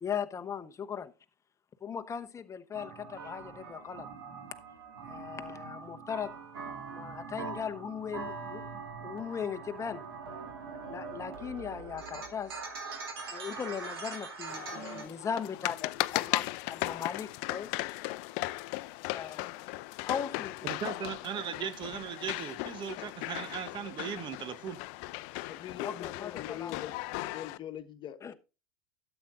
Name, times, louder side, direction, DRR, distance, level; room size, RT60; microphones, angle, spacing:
voice 1, 0.0-1.1 1.8-4.1 5.1-6.4 6.9-8.7 9.0-10.0 10.9-12.6 13.3-17.8 19.1-19.6 20.1-20.9 25.8-26.8 28.2-28.3, left 7 dB, 25° left, 0.9 m, -38 dB
sound 1, 2.7-15.0, right 4 dB, 85° right, 2.5 m, -42 dB
sound 2, 14.5-27.6, left 20 dB, 60° left, 0.5 m, -37 dB
voice 2, 20.6-24.8, right 8 dB, 40° right, 1.0 m, -38 dB
voice 3, 25.5-28.3, left 10 dB, 40° left, 1.3 m, -42 dB
12.5 x 8.0 x 2.5 m
hypercardioid pair, 90°, 12 cm